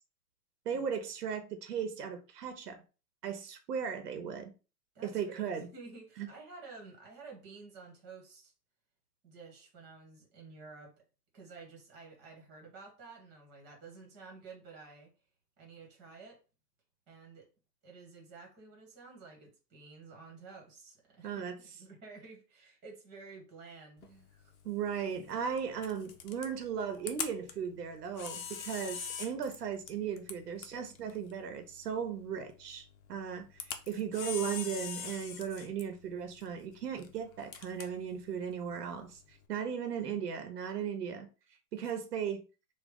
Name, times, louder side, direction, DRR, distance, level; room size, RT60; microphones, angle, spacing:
voice 1, 0.6-2.8 3.2-4.5 5.0-5.7 6.2-6.3 21.2-21.5 24.6-41.3 41.7-42.4, right 7 dB, 80° right, 0.9 m, -37 dB
voice 2, 4.9-8.5 9.2-10.9 11.3-15.1 15.6-16.4 17.1-17.5 17.8-21.5 21.7-24.5, right 4 dB, 20° right, 1.3 m, -52 dB
Camera, 24.0-39.4, left 7 dB, 60° left, 0.7 m, -45 dB
3.1 x 2.3 x 3.5 m
hypercardioid pair, 145°, 47 cm